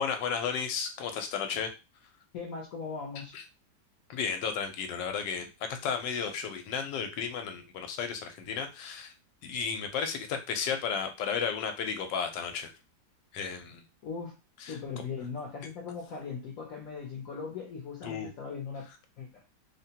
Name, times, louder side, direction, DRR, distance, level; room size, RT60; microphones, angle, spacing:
voice 1, 0.0-1.7 3.3-3.4 4.1-9.1 9.4-12.7 13.3-13.8 14.6-14.8 18.0-18.3, left 6 dB, 90° left, 6 dB, 1.3 m, -33 dB
voice 2, 2.3-3.4 14.0-14.3 14.6-18.9 19.2-19.4, left 5 dB, 60° left, -1 dB, 0.9 m, -39 dB
3.5 x 2.2 x 2.8 m, 0.27 s
omnidirectional pair, 1.9 m